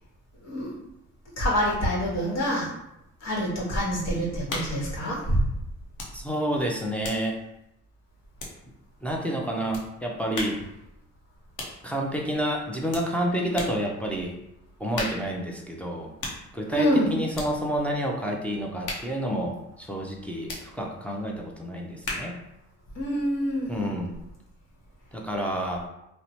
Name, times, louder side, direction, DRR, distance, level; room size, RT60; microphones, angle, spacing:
voice 1, 0.4-0.7 1.4-2.7 3.2-5.4 16.7-17.1 22.9-23.9, equal, 60° left, -4 dB, 1.1 m, -26 dB
sound 1, 4.5-4.9 5.9-6.2 6.5-8.9 9.7-9.9 10.3-10.7 11.6-11.8 12.9-13.1 13.5-13.8 14.9-15.4 16.2-16.5 17.3-17.6 18.8-19.2 20.5-20.7 22.0-22.4, left 2 dB, 85° left, 0.7 m, -36 dB
voice 2, 6.1-7.4 9.0-10.6 11.8-14.4 14.8-16.1 16.5-22.4 23.7-24.1 25.1-25.9, equal, 5° left, -1 dB, 0.4 m, -29 dB
2.9 x 2.1 x 2.7 m, 0.85 s
cardioid pair, 90°, 30 cm